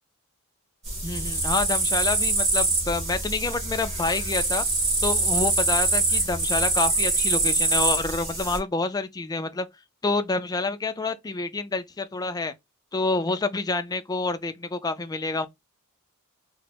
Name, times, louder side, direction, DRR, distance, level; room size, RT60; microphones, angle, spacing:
sound 1, 0.8-8.6, right 2 dB, 30° right, 1.2 m, -24 dB
voice 1, 1.0-4.6 5.0-9.7 10.0-12.5 12.9-15.5, left 3 dB, 15° left, 0.4 m, -28 dB
3.1 x 2.1 x 4.0 m
head